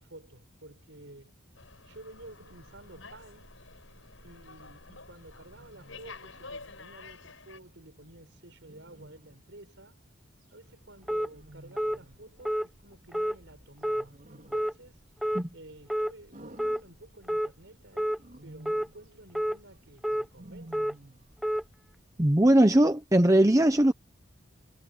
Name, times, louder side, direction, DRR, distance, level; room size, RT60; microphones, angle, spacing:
voice 1, 0.0-1.3 1.8-3.6 4.2-10.0 10.5-15.0 15.5-20.9, right 1 dB, 70° right, 6.0 m, -52 dB
Slam, 1.5-7.6, left 3 dB, 85° left, 7.6 m, -49 dB
Wild animals, 3.9-4.3 5.5-6.2 8.6-9.5 11.3-12.3 13.8-14.8 16.3-17.4 18.2-19.0 20.3-21.4, right 1 dB, 45° right, 4.1 m, -52 dB
sound 1, 11.1-11.3 11.8-12.0 12.5-12.7 13.1-13.4 13.8-14.0 14.5-14.7 15.2-15.4 15.9-16.1 16.6-16.8 17.3-17.5 18.0-18.2 18.7-18.9 19.3-19.6 20.0-20.3 20.7-20.9 21.4-21.6, equal, ahead, 0.3 m, -28 dB
voice 2, 22.2-23.9, right 1 dB, 15° right, 0.9 m, -20 dB
head